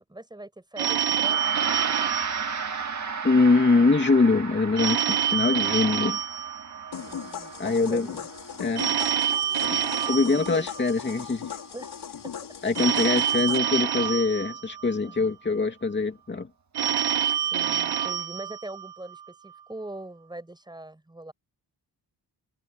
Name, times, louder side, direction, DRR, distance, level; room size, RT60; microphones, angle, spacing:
voice 1, 0.0-1.5 7.0-8.3 10.5-10.7 11.7-11.9 12.2-12.3 12.9-13.0 15.0-15.4 17.5-21.3, right 1 dB, 10° right, 6.6 m, -42 dB
Telephone, 0.8-3.3 4.8-7.2 8.8-11.2 12.7-15.2 16.7-19.2, right 9 dB, 70° right, 1.0 m, -27 dB
Gong, 1.1-10.7, right 6 dB, 45° right, 2.2 m, -35 dB
voice 2, 3.2-6.2 7.6-8.1 8.6-8.8 10.1-11.5 12.6-16.5, left 3 dB, 25° left, 2.7 m, -23 dB
sound 1, 6.9-13.6, left 8 dB, 75° left, 6.1 m, -38 dB
wide cardioid pair, 170°, 40 cm